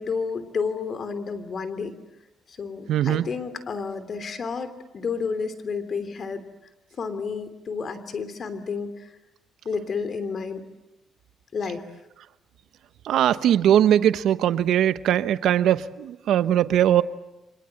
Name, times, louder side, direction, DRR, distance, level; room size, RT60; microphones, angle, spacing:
voice 1, 0.0-1.9 2.5-6.4 7.0-9.2 9.6-10.6 11.5-11.8, left 5 dB, 50° left, 3.1 m, -31 dB
voice 2, 2.9-3.3 13.0-17.0, right 11 dB, 80° right, 0.9 m, -20 dB
30.0 x 25.5 x 7.8 m
cardioid pair, 90°, 0 cm